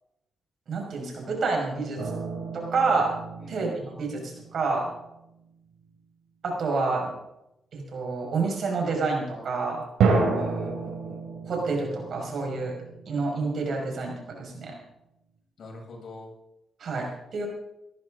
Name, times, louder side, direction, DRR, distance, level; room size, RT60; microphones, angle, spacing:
voice 1, 0.7-2.0 2.5-3.1 3.5-4.9 6.4-7.1 7.7-9.8 11.5-12.7 13.1-14.8 16.8-17.5, right 4 dB, 65° right, 0 dB, 5.9 m, -28 dB
sound 1, 2.0-5.1 10.0-13.6, right 4 dB, 85° right, 3.4 m, -30 dB
voice 2, 3.4-3.7 10.3-11.2 15.6-16.3, left 2 dB, 60° left, -2 dB, 7.5 m, -43 dB
18.5 x 14.0 x 4.0 m, 0.86 s
cardioid pair, 75°, 0 cm